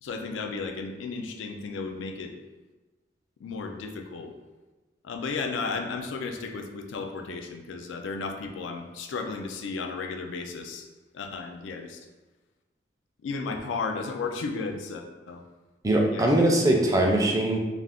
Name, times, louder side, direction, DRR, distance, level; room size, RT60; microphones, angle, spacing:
voice 1, 0.0-2.3 3.4-4.3 5.0-10.9 11.1-12.1 13.2-15.4 16.1-16.8, left 4 dB, 85° left, 5 dB, 0.4 m, -34 dB
voice 2, 15.8-17.6, right 1 dB, 20° right, 0 dB, 0.3 m, -21 dB
2.4 x 2.3 x 3.4 m, 1.2 s
head